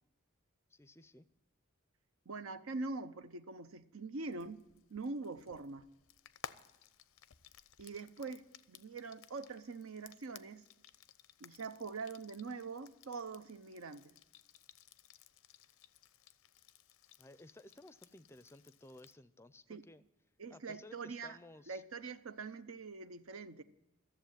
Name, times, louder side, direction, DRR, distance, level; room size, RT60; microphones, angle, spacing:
voice 1, 0.7-1.3 17.2-20.0 20.5-21.8, left 1 dB, 10° left, 0.4 m, -57 dB
voice 2, 2.3-4.6 4.9-5.9 7.8-10.6 11.4-14.1 19.7-19.8 20.4-21.4 21.7-23.6, right 4 dB, 90° right, 0.8 m, -44 dB
Frying (food), 4.3-19.2, left 8 dB, 85° left, 0.6 m, -58 dB
14.0 x 7.4 x 8.9 m
head